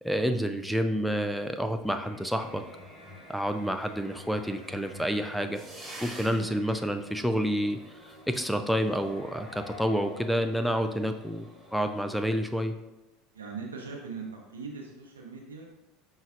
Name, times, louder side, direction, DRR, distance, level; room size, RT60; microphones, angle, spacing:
voice 1, 0.0-2.6 3.3-5.6 6.0-12.7, equal, ahead, 8 dB, 0.3 m, -29 dB
sound 1, 1.8-10.3, equal, 60° left, 1.3 m, -51 dB
sound 2, 2.3-12.3, right 1 dB, 15° right, 1.4 m, -49 dB
voice 2, 13.3-14.3 14.5-15.7, right 5 dB, 85° right, 0 dB, 0.8 m, -41 dB
5.4 x 3.2 x 2.4 m, 0.98 s
hypercardioid pair, 75°, 0 cm